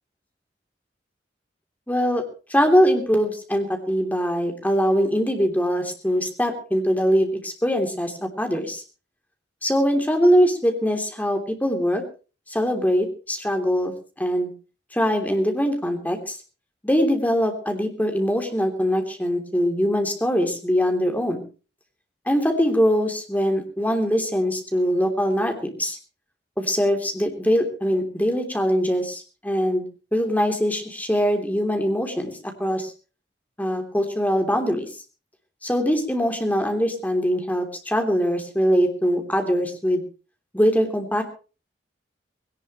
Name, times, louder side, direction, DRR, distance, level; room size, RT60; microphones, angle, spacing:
voice 1, 1.9-2.2 2.5-8.8 9.6-12.0 12.5-14.5 14.9-16.4 16.8-21.4 22.3-26.0 26.6-29.8 30.1-32.3 32.6-32.9 33.6-34.9 35.6-40.0 40.5-41.2, equal, 10° left, 5 dB, 3.1 m, -22 dB
20.0 x 18.0 x 3.1 m, 0.34 s
head